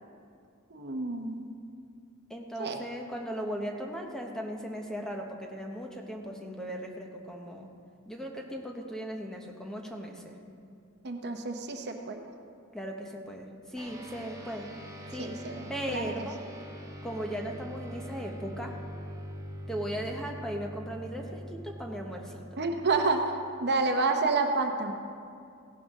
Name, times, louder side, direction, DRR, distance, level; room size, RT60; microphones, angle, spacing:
voice 1, 0.7-1.5 2.6-2.8 11.0-12.2 15.2-16.1 22.6-23.2 23.6-24.9, right 3 dB, 50° right, 4 dB, 0.9 m, -29 dB
voice 2, 2.3-7.7 8.1-10.4 12.7-14.7 15.1-15.4 15.7-16.4 17.0-18.7 19.7-22.4, equal, 5° left, 1 dB, 1.0 m, -37 dB
sound 1, 13.8-23.5, equal, 15° right, 1.3 m, -43 dB
16.5 x 12.0 x 3.7 m, 2.3 s
head